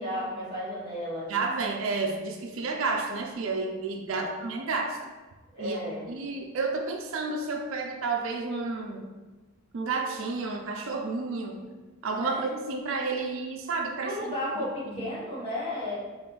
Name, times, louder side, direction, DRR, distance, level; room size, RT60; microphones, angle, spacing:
voice 1, 0.0-1.3 4.1-4.3 5.5-6.1 12.2-12.5 14.0-16.0, left 1 dB, 25° left, -8 dB, 1.3 m, -33 dB
voice 2, 1.3-5.0 5.6-5.8 6.1-9.0 9.7-11.6 12.0-14.6 14.9-15.1, right 3 dB, 70° right, 3 dB, 0.4 m, -31 dB
3.6 x 2.4 x 3.8 m, 1.2 s
head